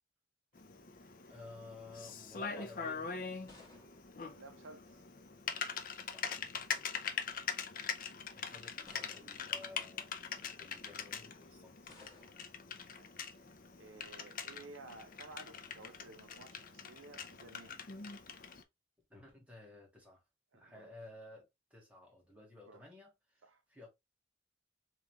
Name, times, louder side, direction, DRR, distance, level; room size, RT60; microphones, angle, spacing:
Typing, 0.6-18.6, left 6 dB, 45° left, 0.6 m, -43 dB
voice 1, 1.3-3.4 6.1-6.4 8.1-10.1 10.6-11.8 19.1-20.2 20.5-23.9, left 2 dB, 5° right, 1.7 m, -54 dB
sound 1, 3.3-5.2 6.3-6.7 7.5-7.6 8.9-9.7 11.9-12.6, left 3 dB, 15° left, 1.6 m, -61 dB
voice 2, 4.3-5.1 8.2-8.3 12.3-12.4 12.9-17.8 20.5-21.0 22.7-22.8 23.4-23.6, right 3 dB, 85° right, 0.6 m, -55 dB
3.6 x 3.2 x 3.1 m
head